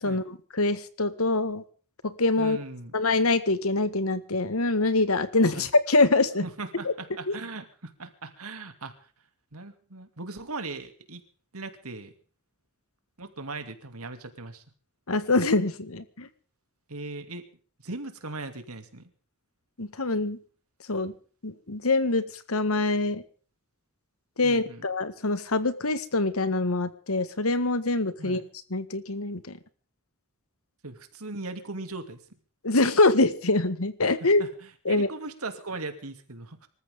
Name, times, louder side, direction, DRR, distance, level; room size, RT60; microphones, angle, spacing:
voice 1, 0.0-1.6 2.0-2.6 2.9-6.4 6.8-6.9 7.3-7.4 15.1-16.3 19.8-20.4 20.9-21.1 21.4-23.2 24.4-28.4 28.7-29.6 32.6-34.5 34.8-35.1, left 2 dB, 75° left, 13 dB, 1.6 m, -24 dB
voice 2, 2.4-2.9 5.5-5.7 6.4-8.9 9.5-11.2 11.5-12.1 13.2-14.6 16.9-17.4 17.8-19.1 24.4-24.9 28.2-28.5 30.8-32.2 34.2-36.7, right 3 dB, 85° right, 8 dB, 2.7 m, -39 dB
25.5 x 14.5 x 3.7 m, 0.40 s
head